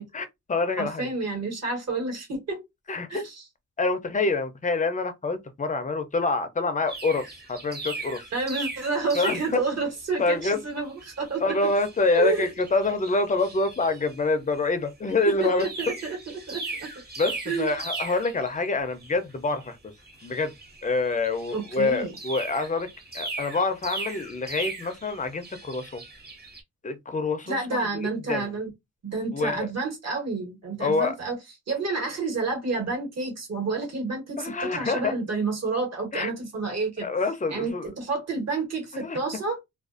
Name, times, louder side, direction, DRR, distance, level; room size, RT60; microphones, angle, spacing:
voice 1, 0.1-1.1 2.9-3.2 3.8-8.2 9.1-9.6 10.2-10.6 11.4-15.9 17.2-19.8 20.2-20.5 20.8-22.9 23.1-26.0 26.8-28.5 29.3-29.7 30.8-31.2 34.4-35.1 36.1-36.3 37.0-37.9 38.9-39.2, left 3 dB, 25° left, 0.4 m, -26 dB
voice 2, 0.8-2.6 3.1-3.4 8.3-11.6 12.1-12.5 15.4-17.0 17.5-17.7 21.5-22.1 27.5-28.7 29.0-31.4 31.7-37.1 37.5-39.6, right 3 dB, 55° right, 1.3 m, -29 dB
sound 1, 6.9-9.9 10.4-10.6 10.9-14.2 14.5-14.7 15.1-26.6, right 3 dB, 30° right, 1.0 m, -38 dB
2.4 x 2.3 x 2.4 m
wide cardioid pair, 115°, 31 cm